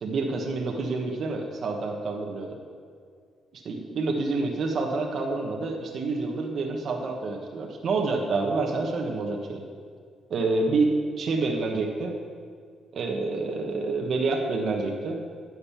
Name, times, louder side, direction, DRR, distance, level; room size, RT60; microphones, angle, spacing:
voice 1, 0.0-2.6 3.5-9.6 10.3-12.1 12.9-15.2, right 3 dB, 55° right, 1 dB, 1.3 m, -28 dB
10.0 x 6.6 x 7.2 m, 2.1 s
cardioid pair, 90°, 0 cm